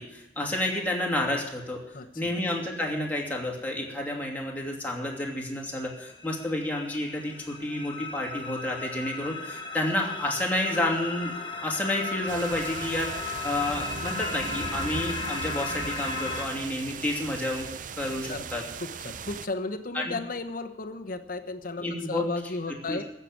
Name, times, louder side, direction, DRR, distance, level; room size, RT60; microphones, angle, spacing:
voice 1, 0.0-1.8 2.1-11.3 11.6-17.7 18.0-18.6 19.9-20.1 21.8-22.3 22.9-23.0, left 1 dB, 10° left, -1 dB, 2.8 m, -30 dB
voice 2, 1.9-2.3 18.3-18.5 18.8-23.0, left 3 dB, 50° left, 7 dB, 1.1 m, -34 dB
sound 1, 5.9-16.5, left 3 dB, 30° left, 1.6 m, -36 dB
sound 2, 12.3-19.5, right 5 dB, 50° right, 0.6 m, -38 dB
15.0 x 6.8 x 9.5 m, 0.93 s
head